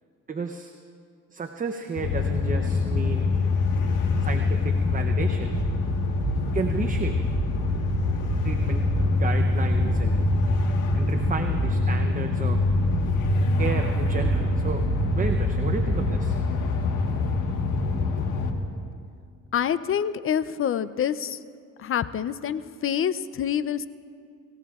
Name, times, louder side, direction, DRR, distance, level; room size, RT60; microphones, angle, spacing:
voice 1, 0.3-0.7 1.3-3.3 4.2-5.6 6.5-7.2 8.4-8.9 9.2-10.3 10.9-12.6 13.6-14.9 15.1-16.4, right 4 dB, 25° right, 4 dB, 0.7 m, -32 dB
sound 1, 2.0-18.5, left 3 dB, 85° left, 1.5 m, -24 dB
sound 2, 5.6-6.5 7.2-9.1 9.9-10.6 10.9-11.9 12.5-16.2, right 5 dB, 55° right, 1.1 m, -31 dB
voice 2, 19.5-21.4 21.8-23.9, left 9 dB, 45° left, 14 dB, 0.5 m, -26 dB
28.5 x 16.0 x 2.4 m, 2.3 s
cardioid pair, 90°, 30 cm